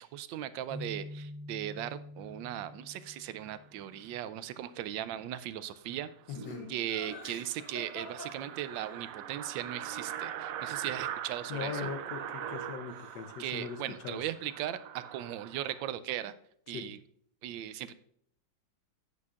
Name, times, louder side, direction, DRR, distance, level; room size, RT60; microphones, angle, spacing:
voice 1, 0.0-6.4 6.7-11.9 13.4-16.3 16.7-17.0 17.4-17.9, right 11 dB, 90° right, 14 dB, 1.3 m, -38 dB
sound 1, 0.7-4.2, left 1 dB, 55° right, 1.4 m, -46 dB
sound 2, 5.9-6.0 6.4-6.5 6.8-6.9 7.1-15.9, right 10 dB, 75° right, 0.8 m, -42 dB
voice 2, 6.3-6.6 11.5-13.8 14.0-14.2 16.7-16.9, left 6 dB, 70° left, 9 dB, 1.4 m, -39 dB
Laughter, 6.3-9.0 11.8-12.6 12.9-13.5, left 1 dB, 45° left, 2.9 m, -46 dB
10.5 x 8.5 x 2.4 m, 0.67 s
omnidirectional pair, 2.0 m